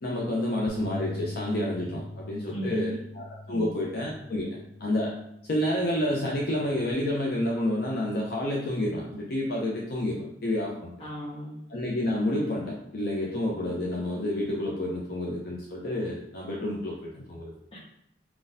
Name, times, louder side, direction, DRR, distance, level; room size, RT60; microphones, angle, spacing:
voice 1, 0.0-4.5 4.8-5.1 5.5-10.9 11.7-17.5, left 1 dB, 55° left, -2 dB, 0.6 m, -29 dB
Bass guitar, 0.7-6.9, left 1 dB, 50° right, 0.5 m, -42 dB
voice 2, 2.5-3.0 3.5-3.7 11.0-11.6 17.7-17.8, right 1 dB, 30° left, -5 dB, 1.2 m, -35 dB
4.4 x 4.0 x 2.6 m, 0.78 s
head